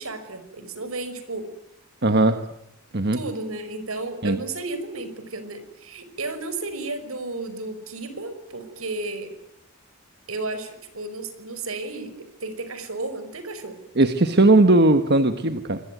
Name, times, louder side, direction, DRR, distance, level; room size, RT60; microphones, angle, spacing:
voice 1, 0.0-1.5 3.1-9.3 10.3-13.8, right 2 dB, 75° right, 11 dB, 5.4 m, -33 dB
voice 2, 2.0-2.4 2.9-3.2 4.2-4.4 14.0-15.8, right 2 dB, 50° right, 8 dB, 1.4 m, -18 dB
27.0 x 22.0 x 9.4 m, 0.83 s
head